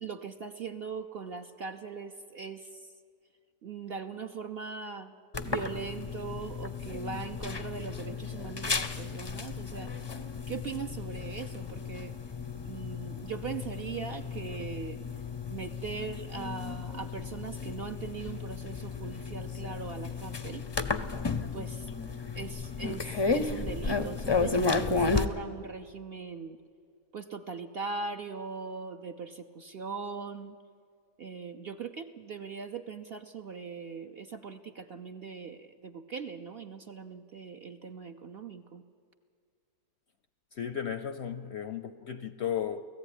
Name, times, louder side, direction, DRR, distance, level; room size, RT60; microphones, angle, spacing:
voice 1, 0.0-2.9 3.6-5.1 5.4-9.9 10.5-12.2 12.6-15.0 15.5-20.7 21.5-21.9 22.3-26.6 27.1-30.6 31.2-38.8, right 5 dB, 50° right, 0.7 m, -40 dB
sound 1, 5.3-25.2, left 4 dB, 35° left, 0.4 m, -33 dB
voice 2, 40.6-42.8, left 8 dB, 60° left, 0.7 m, -34 dB
18.0 x 14.5 x 9.9 m
omnidirectional pair, 1.6 m